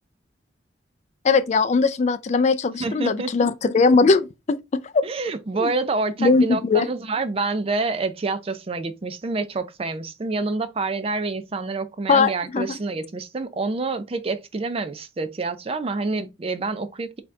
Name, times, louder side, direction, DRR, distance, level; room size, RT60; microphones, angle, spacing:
voice 1, 1.2-5.0 5.6-5.7 6.2-6.9 12.1-12.8, left 4 dB, 40° left, 0.3 m, -20 dB
voice 2, 2.8-3.5 5.0-17.1, right 3 dB, 30° right, 0.4 m, -27 dB
4.2 x 2.8 x 3.6 m
head